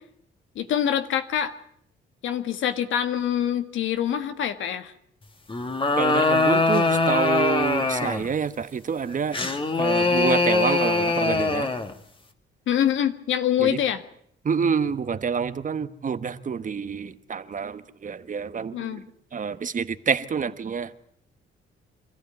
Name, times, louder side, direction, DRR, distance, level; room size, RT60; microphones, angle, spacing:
voice 1, 0.6-1.5 2.2-4.9 12.7-14.0 18.7-19.0, left 10 dB, 80° left, 1.8 m, -25 dB
sound 1, 5.5-8.3 9.3-11.9, left 3 dB, 25° left, 2.1 m, -22 dB
voice 2, 6.0-9.4 9.8-11.7 13.6-13.8 14.4-19.0 19.3-20.9, right 6 dB, 40° right, 1.2 m, -27 dB
25.0 x 14.5 x 9.2 m
cardioid pair, 90°, 20 cm